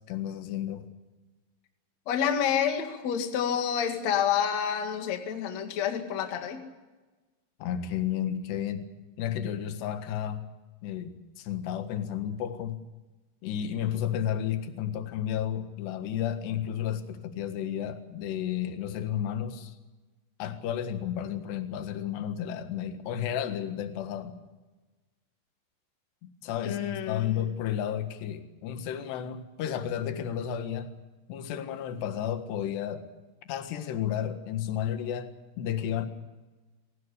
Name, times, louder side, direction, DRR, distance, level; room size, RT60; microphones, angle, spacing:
voice 1, 0.1-0.9 7.6-8.9 9.2-10.5 10.8-12.8 13.4-19.8 20.4-24.4 26.2-30.9 31.3-33.1 33.5-35.3 35.6-36.1, left 10 dB, 70° left, 8 dB, 3.6 m, -32 dB
voice 2, 2.1-6.6 26.6-27.3, left 8 dB, 45° left, 5 dB, 2.7 m, -28 dB
24.0 x 18.5 x 8.4 m, 1.2 s
omnidirectional pair, 5.2 m